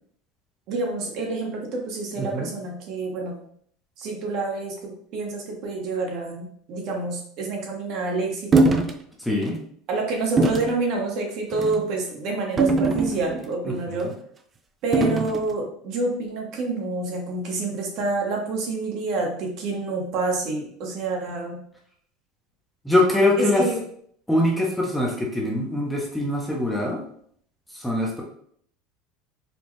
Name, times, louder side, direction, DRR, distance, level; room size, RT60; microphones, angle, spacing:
voice 1, 0.7-3.4 4.0-8.7 9.9-14.1 14.8-21.6 23.6-23.8, right 3 dB, 55° right, 0 dB, 1.0 m, -28 dB
voice 2, 2.2-2.5 9.2-9.6 13.6-13.7 14.0-14.1 22.8-23.7 24.3-27.0 27.7-28.2, left 1 dB, 5° left, -2 dB, 0.7 m, -23 dB
sound 1, 8.5-9.0 9.4-9.6 10.4-10.7 11.5-11.8 12.6-13.5 14.9-15.4, right 3 dB, 25° right, 0.3 m, -21 dB
4.2 x 2.3 x 3.1 m, 0.63 s
supercardioid pair, 140°, 0 cm